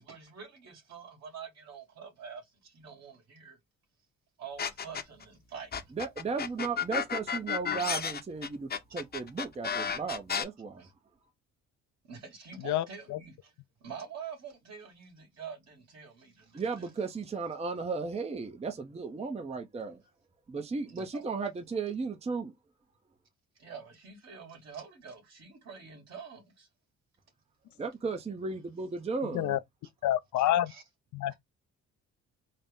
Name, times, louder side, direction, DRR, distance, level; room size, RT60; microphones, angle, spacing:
voice 1, 0.0-3.6 4.4-5.7 8.9-9.0 10.8-10.9 12.0-13.5 13.8-16.9 20.9-21.3 23.6-26.7 30.7-30.8, right 6 dB, 60° right, 2.3 m, -46 dB
sound 1, 4.6-5.2 5.7-10.4, left 7 dB, 35° left, 0.7 m, -32 dB
voice 2, 5.9-10.9 16.5-20.0 20.5-22.5 27.8-29.6, right 4 dB, 20° right, 0.6 m, -35 dB
voice 3, 12.6-13.2 29.3-29.6 30.0-30.7 31.1-31.3, left 13 dB, 70° left, 0.5 m, -28 dB
4.1 x 2.1 x 3.6 m
cardioid pair, 90°, 30 cm